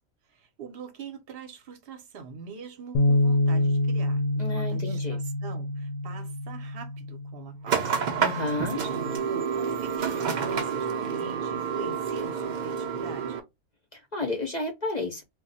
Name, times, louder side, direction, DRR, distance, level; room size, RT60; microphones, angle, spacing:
voice 1, 0.3-7.9 8.6-13.4, right 5 dB, 50° right, 0.7 m, -43 dB
Bass guitar, 2.9-9.2, left 1 dB, 70° left, 0.9 m, -27 dB
voice 2, 4.4-5.2 8.2-8.8 13.9-15.2, left 3 dB, 45° left, 0.5 m, -31 dB
sound 1, 7.7-13.4, right 6 dB, 85° right, 0.4 m, -29 dB
2.3 x 2.1 x 3.9 m
omnidirectional pair, 1.6 m